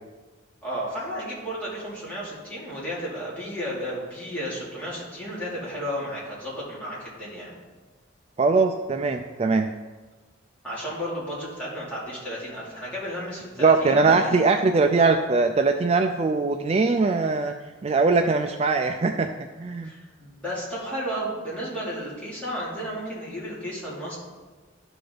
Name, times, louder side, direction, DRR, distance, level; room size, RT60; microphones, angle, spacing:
voice 1, 0.6-7.5 10.6-14.3 19.8-24.2, equal, 5° left, -8 dB, 2.8 m, -33 dB
voice 2, 8.4-9.7 13.6-17.6 17.8-19.3 19.6-19.9, right 4 dB, 30° right, 6 dB, 0.3 m, -21 dB
12.5 x 5.0 x 3.9 m, 1.3 s
head